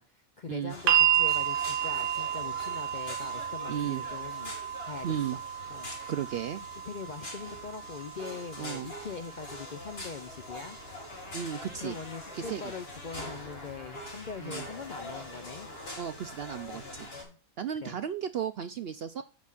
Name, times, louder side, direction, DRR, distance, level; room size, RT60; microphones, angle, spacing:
voice 1, 0.0-4.5 4.8-5.4 5.7-6.1 6.8-10.8 11.8-15.7 16.7-17.4 17.8-18.0, left 5 dB, 60° left, 7 dB, 0.4 m, -42 dB
sound 1, 0.7-17.2, left 2 dB, 45° left, 2.4 m, -44 dB
sound 2, 0.9-13.0 14.0-14.1, right 11 dB, 85° right, 1.1 m, -33 dB
voice 2, 3.7-4.0 5.0-5.4 6.1-6.6 8.6-8.9 11.3-12.0 12.3-12.7 14.4-14.7 16.0-17.1 17.6-19.2, right 9 dB, 70° right, 10 dB, 0.6 m, -34 dB
sound 3, 11.1-16.0, left 1 dB, 25° left, 1.6 m, -50 dB
14.0 x 5.1 x 2.4 m, 0.34 s
omnidirectional pair, 1.5 m